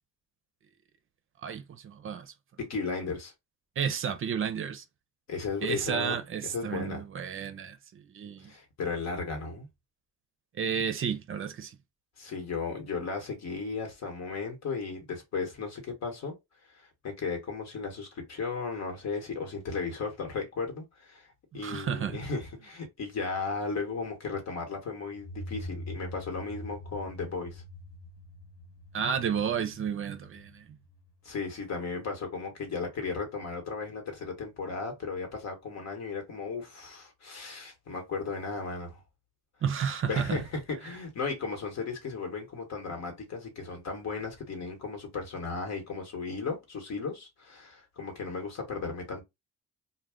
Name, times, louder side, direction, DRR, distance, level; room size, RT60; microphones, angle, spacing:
voice 1, 1.4-2.3 3.8-4.8 5.6-8.5 10.6-11.8 21.6-22.2 28.9-30.7 39.6-40.4, right 7 dB, 45° right, 0.5 m, -32 dB
voice 2, 2.6-3.3 5.3-6.2 6.4-7.0 8.4-9.7 12.2-16.4 16.7-21.3 21.5-27.6 31.2-39.0 40.1-49.2, left 4 dB, 60° left, 1.2 m, -35 dB
sound 1, 25.1-31.7, left 1 dB, 45° left, 1.2 m, -44 dB
2.3 x 2.2 x 3.4 m
cardioid pair, 90°, 30 cm